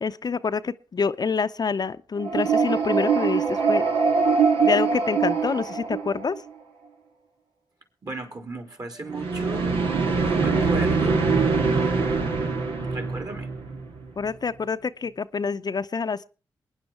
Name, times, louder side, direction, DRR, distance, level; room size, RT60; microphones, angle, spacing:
voice 1, 0.0-3.9 4.6-6.4 14.2-16.3, left 5 dB, 50° left, 11 dB, 0.6 m, -27 dB
sound 1, 2.2-6.5 9.1-14.1, right 5 dB, 85° right, 1.8 m, -23 dB
voice 2, 8.0-9.9 10.2-11.3 11.6-12.6 12.9-13.5, right 3 dB, 45° right, 6 dB, 3.9 m, -36 dB
21.5 x 9.6 x 4.6 m, 0.36 s
supercardioid pair, 40°, 9 cm